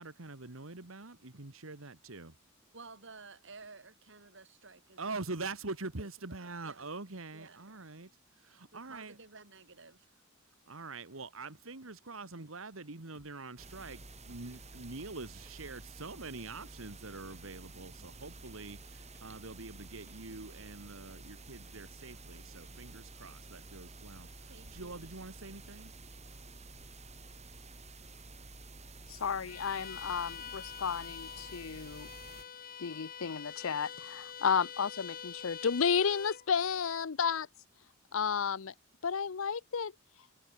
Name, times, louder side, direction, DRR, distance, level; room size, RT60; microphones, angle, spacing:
voice 1, 0.0-2.3 5.0-8.1 8.4-9.1 10.7-25.9, right 3 dB, 80° right, 2.0 m, -44 dB
voice 2, 2.7-5.2 6.0-6.1 6.4-6.9 7.3-7.8 8.7-10.2 24.5-25.1, right 4 dB, 65° right, 4.9 m, -53 dB
sound 1, 13.1-13.7 14.1-15.6 16.2-16.5 17.0-19.5 19.8-20.2, equal, 10° right, 7.2 m, -65 dB
sound 2, 13.6-32.4, right 2 dB, 35° right, 5.3 m, -51 dB
voice 3, 29.1-32.1 32.8-37.5 38.1-38.7 39.0-39.9, left 6 dB, 75° left, 0.6 m, -32 dB
Bowed string instrument, 29.5-36.5, left 7 dB, 45° left, 2.1 m, -45 dB
head